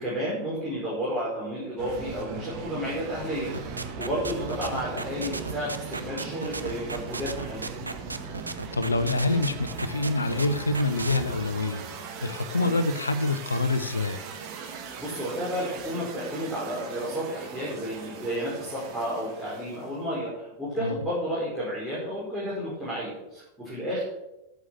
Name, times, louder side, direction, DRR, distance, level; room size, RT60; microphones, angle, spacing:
voice 1, 0.0-3.5 4.0-7.7 12.5-12.8 14.6-24.0, equal, 5° right, -9 dB, 5.3 m, -32 dB
sound 1, 1.8-20.1, right 5 dB, 40° right, 2.1 m, -39 dB
sound 2, 3.5-11.2, right 3 dB, 80° right, 0.7 m, -34 dB
voice 2, 8.7-11.8 12.2-14.2 20.8-21.0, left 2 dB, 80° left, 12 dB, 0.7 m, -26 dB
11.0 x 8.1 x 6.5 m, 0.91 s
figure-of-eight pair, 90°, 0 cm